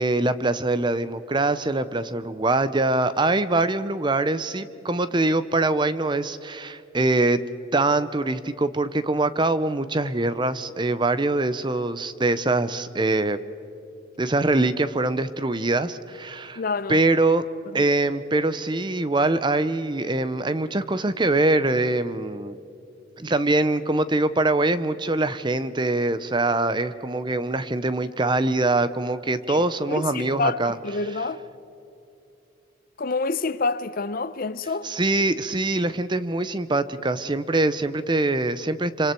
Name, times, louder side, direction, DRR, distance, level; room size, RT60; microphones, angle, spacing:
voice 1, 0.0-7.4 7.7-13.4 14.2-16.6 16.9-17.4 17.7-22.6 23.2-30.8 34.8-39.1, right 2 dB, 25° right, 0.6 m, -23 dB
voice 2, 16.5-17.0 29.5-29.6 29.9-31.4 33.0-34.9, left 3 dB, 45° left, 0.6 m, -27 dB
26.0 x 25.5 x 4.5 m
head